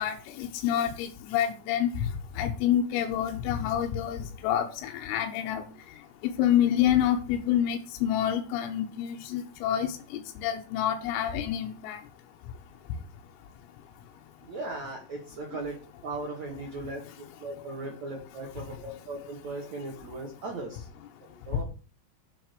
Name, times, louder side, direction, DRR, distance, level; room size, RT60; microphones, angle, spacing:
voice 1, 0.0-1.9 2.4-5.6 6.2-12.0, left 10 dB, 85° left, 3 dB, 3.9 m, -27 dB
voice 2, 14.4-20.9 21.5-21.6, right 2 dB, 55° right, 0 dB, 2.1 m, -38 dB
8.4 x 6.3 x 6.8 m, 0.36 s
omnidirectional pair, 5.9 m